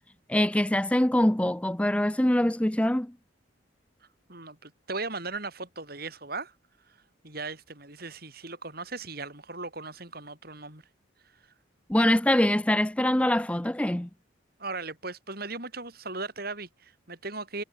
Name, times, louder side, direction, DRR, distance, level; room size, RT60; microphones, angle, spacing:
voice 1, 0.3-3.1 11.9-14.1, left 1 dB, 5° left, 0.5 m, -24 dB
voice 2, 4.3-6.5 6.9-7.0 7.2-10.8 14.6-17.6, right 3 dB, 50° right, 6.5 m, -37 dB
head